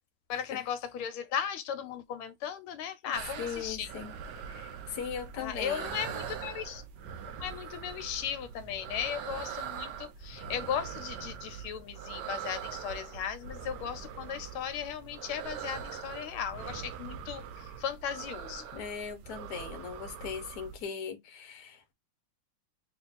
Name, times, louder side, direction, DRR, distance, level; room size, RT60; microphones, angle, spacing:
voice 1, 0.3-3.9 5.4-6.8 7.4-18.8, left 8 dB, 80° left, 1.5 m, -36 dB
sound 1, 3.1-20.8, right 8 dB, 70° right, 1.0 m, -42 dB
voice 2, 3.4-4.1 4.5-6.0 18.7-21.9, left 7 dB, 60° left, 1.1 m, -39 dB
3.5 x 2.5 x 3.9 m
omnidirectional pair, 2.4 m